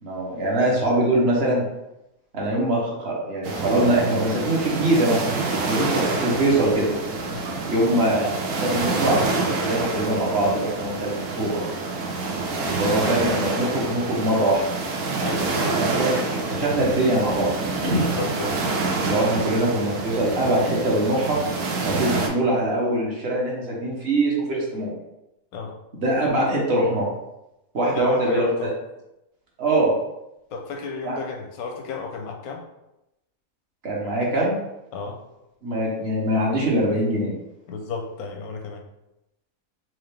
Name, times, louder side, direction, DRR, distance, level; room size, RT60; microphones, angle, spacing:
voice 1, 0.0-1.6 2.3-5.2 5.6-6.9 7.7-8.3 8.6-9.2 9.6-11.6 12.8-14.6 15.7-18.0 19.0-21.4 21.8-24.9 26.0-27.1 27.7-28.7 29.6-29.9 31.0-31.2 33.8-34.6 35.6-37.3, right 1 dB, 50° right, -4 dB, 1.1 m, -23 dB
sound 1, 3.4-22.3, right 3 dB, 90° right, 1.2 m, -27 dB
voice 2, 15.2-15.6 18.0-18.6 25.5-25.8 27.9-28.7 30.5-32.7 34.9-35.2 37.7-38.8, left 3 dB, 85° left, 3 dB, 1.1 m, -32 dB
4.4 x 2.4 x 3.2 m, 0.90 s
omnidirectional pair, 1.5 m